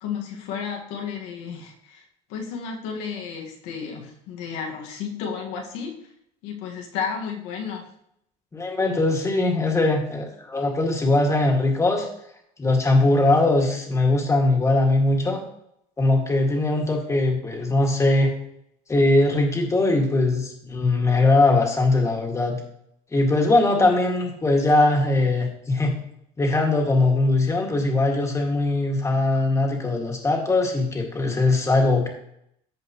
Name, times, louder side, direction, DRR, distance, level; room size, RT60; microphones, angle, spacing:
voice 1, 0.0-2.0 2.3-6.0 6.4-7.8, left 6 dB, 85° left, 0 dB, 1.8 m, -32 dB
voice 2, 8.5-12.1 12.6-15.4 16.0-18.3 18.9-22.6 23.1-26.0 26.4-32.1, left 2 dB, 15° left, 1 dB, 2.1 m, -21 dB
14.0 x 5.1 x 3.1 m, 0.73 s
cardioid pair, 120°, 17 cm